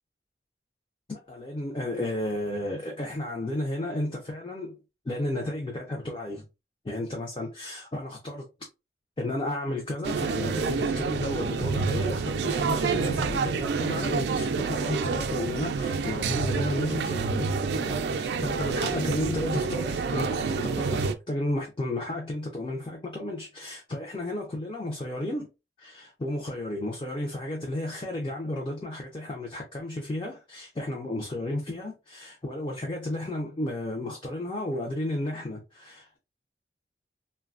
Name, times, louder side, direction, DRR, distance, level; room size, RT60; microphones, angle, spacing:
voice 1, 1.1-4.8 5.0-6.4 6.8-8.5 9.2-25.5 25.8-36.2, left 1 dB, 30° left, 0.4 m, -33 dB
sound 1, 10.0-21.2, right 5 dB, 70° right, 0.3 m, -28 dB
3.2 x 2.2 x 2.4 m
head